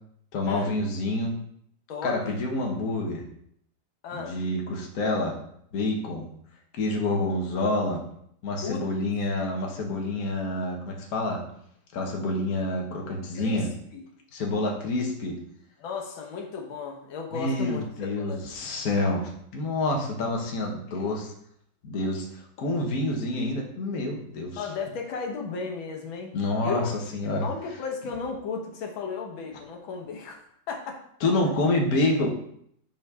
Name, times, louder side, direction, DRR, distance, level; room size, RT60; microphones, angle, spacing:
voice 1, 0.3-1.3 2.0-3.2 4.1-5.4 5.7-6.3 6.7-8.0 8.4-11.4 11.9-13.7 14.3-15.3 17.3-21.3 21.8-24.6 26.3-26.8 27.1-27.5 31.2-32.3, left 2 dB, 55° left, 1 dB, 1.5 m, -27 dB
voice 2, 1.9-2.4 4.0-4.4 8.6-8.9 13.4-13.6 13.9-14.0 15.8-18.4 24.6-26.3 26.6-26.9 27.2-30.4 30.7-31.0, left 5 dB, 80° left, 2 dB, 1.8 m, -34 dB
5.6 x 4.5 x 5.5 m, 0.68 s
omnidirectional pair, 2.1 m